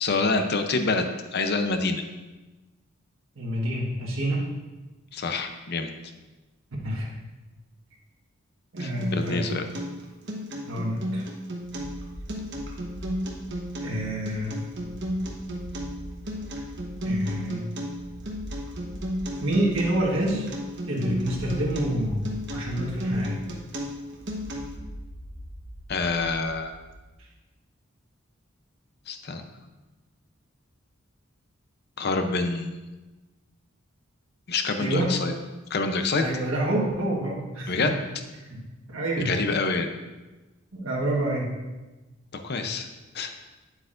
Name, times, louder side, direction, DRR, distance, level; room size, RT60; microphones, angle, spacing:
voice 1, 0.0-1.1 1.3-2.0 5.1-5.9 8.8-9.7 25.9-26.7 29.1-29.5 32.0-32.8 34.5-35.3 35.7-36.3 37.7-38.0 39.2-39.9 42.3-42.9 43.1-43.3, left 3 dB, 55° left, 6 dB, 0.6 m, -26 dB
voice 2, 3.4-4.5 6.8-7.1 8.7-9.5 10.6-11.2 13.8-14.6 17.0-17.7 19.4-20.5 20.9-23.4 34.8-35.1 36.1-37.9 38.4-38.6 38.9-39.3 40.7-41.5, right 1 dB, 75° right, -4 dB, 1.4 m, -28 dB
Acoustic guitar, 8.8-24.8, equal, 60° right, 1.1 m, -33 dB
sound 1, 11.6-27.1, equal, 10° right, 0.9 m, -43 dB
9.0 x 7.8 x 2.6 m, 1.2 s
head